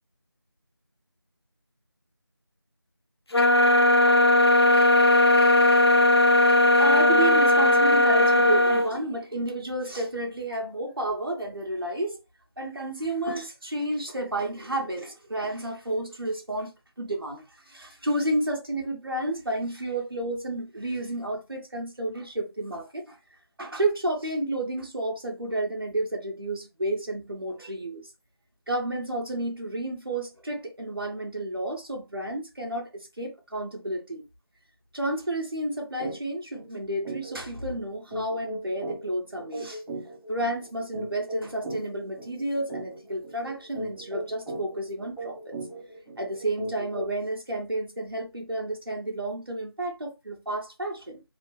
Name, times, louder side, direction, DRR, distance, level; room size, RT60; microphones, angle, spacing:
sound 1, 3.3-8.9, left 1 dB, 85° left, 0.5 m, -18 dB
voice 1, 6.8-12.2 12.6-23.2 23.6-28.1 28.7-34.2 34.9-39.8 40.3-45.5 46.2-51.2, right 1 dB, 65° right, 1.0 m, -31 dB
sound 2, 36.0-36.2 36.5-36.7 37.0-47.3, right 1 dB, 10° left, 0.8 m, -38 dB
2.8 x 2.1 x 3.2 m
figure-of-eight pair, 170°, 13 cm